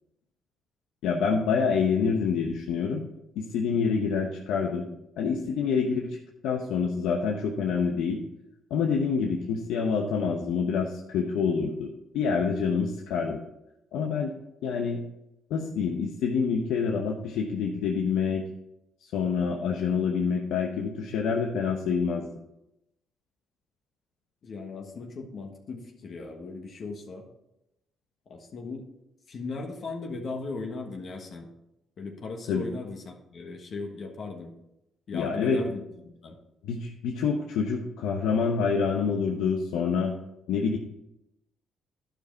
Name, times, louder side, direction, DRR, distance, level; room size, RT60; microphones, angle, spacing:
voice 1, 1.0-3.0 3.4-4.9 5.2-6.1 6.4-8.2 8.7-13.4 13.9-14.3 14.6-15.0 15.5-18.4 19.1-22.3 32.5-32.7 35.1-35.7 36.6-40.1 40.5-40.8, left 5 dB, 90° left, 1 dB, 0.9 m, -27 dB
voice 2, 24.4-27.2 28.3-28.9 29.3-31.5 32.0-34.5 35.1-36.4, left 3 dB, 55° left, 1 dB, 1.4 m, -37 dB
11.5 x 5.2 x 4.6 m, 0.87 s
cardioid pair, 90°, 0 cm